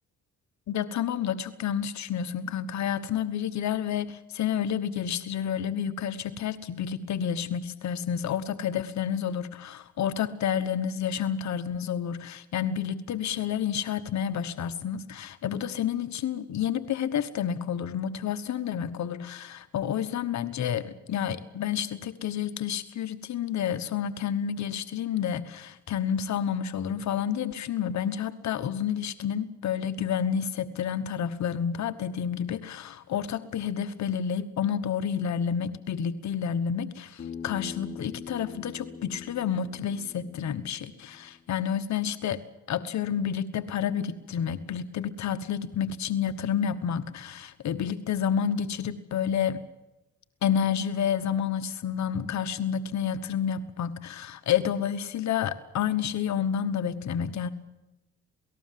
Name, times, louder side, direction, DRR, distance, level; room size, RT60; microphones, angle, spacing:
voice 1, 0.7-42.4 42.7-49.6 50.4-57.5, left 8 dB, 65° left, 11 dB, 1.2 m, -30 dB
Bass guitar, 37.2-41.5, left 6 dB, 35° left, 3.3 m, -43 dB
28.0 x 19.0 x 7.6 m, 0.96 s
cardioid pair, 90°, 30 cm